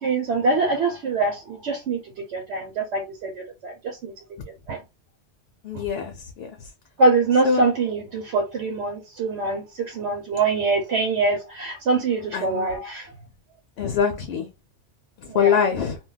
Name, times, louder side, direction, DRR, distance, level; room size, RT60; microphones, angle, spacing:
voice 1, 0.0-2.0 2.3-4.1 4.7-4.8 7.0-13.1 15.3-15.5, right 3 dB, 80° right, 0.9 m, -24 dB
voice 2, 5.6-6.5 7.4-7.6 12.3-12.7 13.8-14.5 15.2-16.0, left 7 dB, 70° left, 0.8 m, -23 dB
2.2 x 2.2 x 3.7 m
omnidirectional pair, 1.2 m